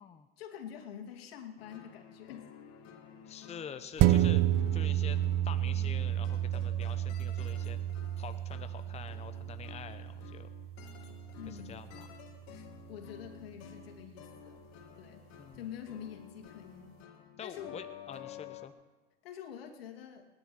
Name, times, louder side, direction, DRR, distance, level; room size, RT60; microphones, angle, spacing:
voice 1, 0.4-2.5 11.4-11.8 12.5-14.7 15.0-15.2 15.5-17.0 17.4-17.8 19.2-20.3, left 9 dB, 75° left, 4 dB, 2.6 m, -46 dB
sound 1, 1.6-18.7, left 9 dB, 55° left, 2.5 m, -52 dB
voice 2, 3.3-4.5 4.7-5.2 5.4-7.8 8.2-10.5 11.5-12.1 15.3-15.6 17.4-18.7, left 7 dB, 20° left, 10 dB, 0.8 m, -46 dB
sound 2, 4.0-12.8 13.2-13.3, right 13 dB, 45° right, 0.9 m, -31 dB
29.5 x 10.5 x 4.5 m, 1.1 s
hypercardioid pair, 95°, 30 cm